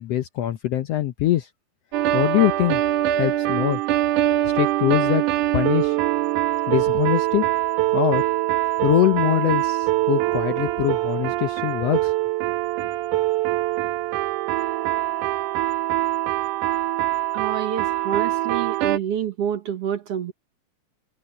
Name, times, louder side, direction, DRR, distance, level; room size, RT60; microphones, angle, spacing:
voice 1, 0.0-1.5 2.1-2.8 3.1-3.8 4.4-5.2 5.5-6.0 6.7-7.4 7.9-8.2 8.8-12.1, left 13 dB, 70° left, 1.6 m, -22 dB
sound 1, 1.9-19.0, right 15 dB, 90° right, 2.5 m, -23 dB
voice 2, 17.3-20.3, right 9 dB, 60° right, 2.1 m, -27 dB
omnidirectional pair, 3.5 m